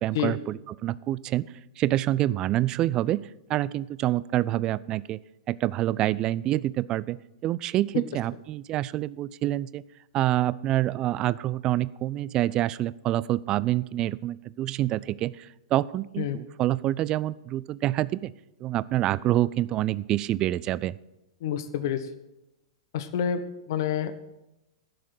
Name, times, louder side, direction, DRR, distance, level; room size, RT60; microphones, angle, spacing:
voice 1, 0.0-1.4 1.8-3.2 3.5-5.2 5.5-9.8 10.1-18.3 18.6-20.9, right 14 dB, 30° right, 20 dB, 0.3 m, -27 dB
voice 2, 21.4-22.1 22.9-23.4 23.7-24.1, left 9 dB, 50° left, 11 dB, 0.9 m, -28 dB
11.0 x 6.5 x 7.8 m, 0.93 s
figure-of-eight pair, 100°, 2 cm